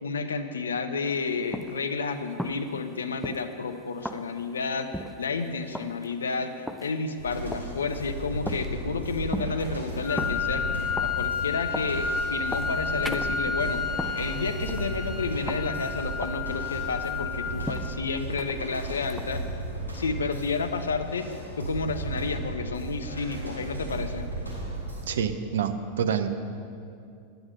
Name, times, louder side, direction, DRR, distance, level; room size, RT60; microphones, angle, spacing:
voice 1, 0.0-13.9 14.1-19.4 19.9-21.3 21.6-24.3, left 4 dB, 70° left, 9 dB, 0.6 m, -31 dB
sound 1, 1.0-19.2, equal, ahead, 0.4 m, -40 dB
sound 2, 7.2-25.1, right 2 dB, 80° right, 2.4 m, -35 dB
Wind instrument woodwind instrument, 10.0-18.0, left 5 dB, 30° left, 0.9 m, -31 dB
voice 2, 25.1-26.3, right 7 dB, 60° right, 9 dB, 0.6 m, -27 dB
9.6 x 7.8 x 5.5 m, 2.4 s
figure-of-eight pair, 90°, 0 cm